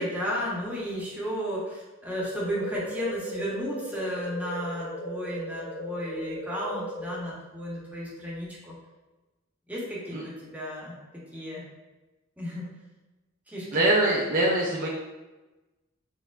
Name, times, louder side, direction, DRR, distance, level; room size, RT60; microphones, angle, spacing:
voice 1, 0.0-8.8 9.7-11.0 11.3-11.6 12.4-12.7 13.5-13.8, equal, 10° right, -6 dB, 0.7 m, -33 dB
sound 1, 2.2-7.2, equal, 50° left, 0.7 m, -37 dB
voice 2, 13.7-14.9, right 1 dB, 40° right, -3 dB, 0.4 m, -23 dB
4.2 x 2.1 x 2.3 m, 1.1 s
head